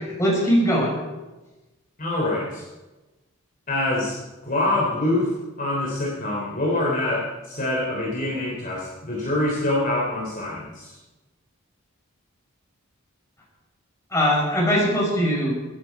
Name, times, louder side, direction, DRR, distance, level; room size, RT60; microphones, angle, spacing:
voice 1, 0.2-1.0 14.1-15.5, equal, 15° left, -3 dB, 5.5 m, -20 dB
voice 2, 2.0-2.6 3.7-4.2 4.4-5.3 5.6-11.0, left 1 dB, 40° left, -4 dB, 3.3 m, -25 dB
24.0 x 10.0 x 4.7 m, 1.1 s
head